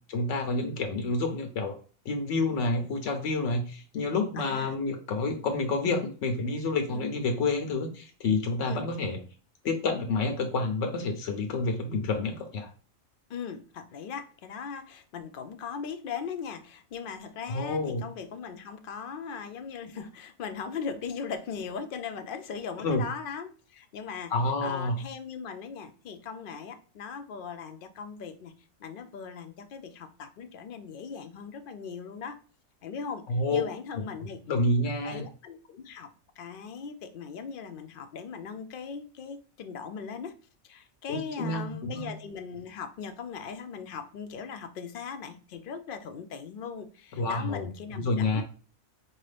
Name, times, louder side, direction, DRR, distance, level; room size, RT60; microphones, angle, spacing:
voice 1, 0.1-1.8 2.1-9.2 9.6-12.7 17.5-18.0 22.8-23.0 24.3-25.0 33.3-33.6 34.5-35.2 41.1-42.1 47.2-47.7 47.9-48.4, left 3 dB, 80° left, 1.0 m, -29 dB
voice 2, 4.3-4.8 6.9-7.1 8.7-8.9 13.3-24.3 24.6-28.5 28.8-32.4 32.8-34.4 35.0-40.4 40.6-48.4, left 6 dB, 60° left, 0.6 m, -39 dB
4.5 x 2.7 x 3.2 m
omnidirectional pair, 1.2 m